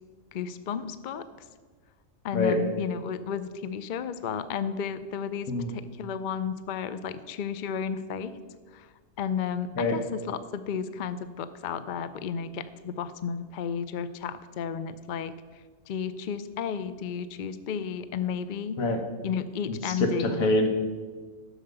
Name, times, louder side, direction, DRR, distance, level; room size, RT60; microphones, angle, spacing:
voice 1, 0.3-1.3 2.2-8.4 8.7-8.9 9.2-15.3 15.9-18.8 19.2-20.5, left 7 dB, 60° left, 13 dB, 0.5 m, -33 dB
voice 2, 19.7-20.7, left 2 dB, 80° left, 5 dB, 1.7 m, -25 dB
11.5 x 6.5 x 6.7 m, 1.5 s
omnidirectional pair, 1.4 m